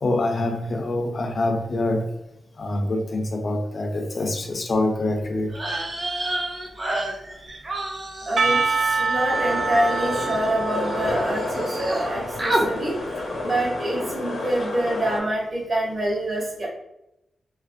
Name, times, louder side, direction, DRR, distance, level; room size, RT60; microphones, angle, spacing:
voice 1, 0.0-2.1 2.6-5.5, left 2 dB, 45° left, 3 dB, 0.3 m, -25 dB
sound 1, 5.5-11.1 11.4-12.1 12.4-12.7, right 1 dB, 25° right, 0.5 m, -30 dB
voice 2, 8.3-13.0 13.4-16.7, right 1 dB, 45° right, -4 dB, 0.9 m, -26 dB
Percussion / Church bell, 8.4-13.4, right 4 dB, 80° right, 0.3 m, -27 dB
sound 2, 9.3-15.2, left 2 dB, 90° left, 0.7 m, -30 dB
2.4 x 2.0 x 2.5 m, 0.84 s
wide cardioid pair, 120°, 0 cm